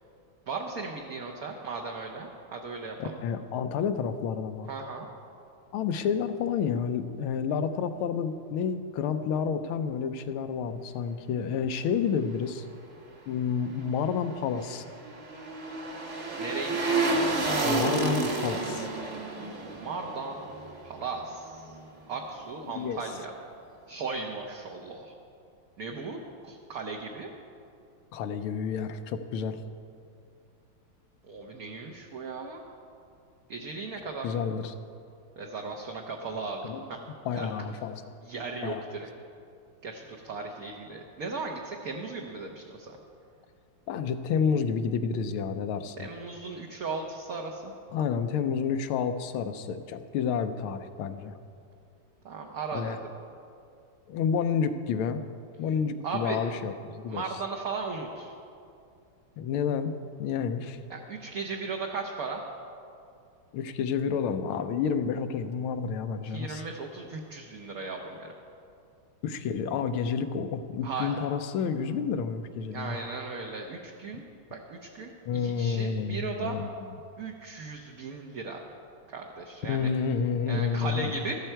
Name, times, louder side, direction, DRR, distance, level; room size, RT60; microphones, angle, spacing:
voice 1, 0.5-3.2 4.7-5.1 16.4-17.0 19.7-20.5 20.8-21.7 22.1-23.3 23.9-25.1 25.8-27.3 31.3-32.6 33.5-34.4 35.4-37.0 37.3-37.5 38.2-39.1 39.8-43.0 46.0-47.7 52.2-53.0 56.0-56.4 57.1-58.3 60.9-62.4 66.2-68.3 70.8-71.1 72.7-74.2 74.5-76.6 77.2-78.7 79.1-79.9 80.5-81.3, right 4 dB, 55° right, 1 dB, 1.1 m, -37 dB
voice 2, 3.0-4.7 5.7-12.7 13.3-14.8 17.6-18.9 22.6-23.0 28.1-29.6 34.2-34.7 36.6-36.8 37.2-38.1 38.6-38.8 43.9-46.1 47.9-51.3 52.7-53.0 54.1-55.2 55.6-57.2 59.4-59.9 60.2-60.8 63.5-66.6 69.2-73.0 75.3-76.7 79.6-81.2, left 6 dB, 85° left, 9 dB, 1.5 m, -30 dB
sound 1, 14.2-21.4 21.7-21.8, right 3 dB, 40° right, 1.3 m, -30 dB
13.5 x 12.5 x 4.5 m, 2.5 s
omnidirectional pair, 2.3 m